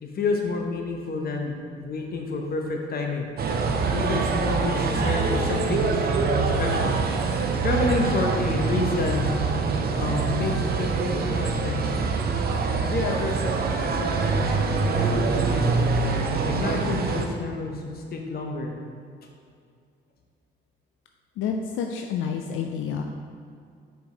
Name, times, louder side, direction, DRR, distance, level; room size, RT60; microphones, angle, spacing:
voice 1, 0.0-3.3 3.9-7.0 7.6-9.3 9.9-12.1 12.8-15.9 16.4-18.7, left 3 dB, 50° left, 2 dB, 1.0 m, -29 dB
sound 1, 3.4-17.3, right 4 dB, 50° right, 0.7 m, -24 dB
voice 2, 21.4-23.0, left 7 dB, 85° left, 3 dB, 0.4 m, -29 dB
6.1 x 5.1 x 3.8 m, 2.3 s
cardioid pair, 90°, 20 cm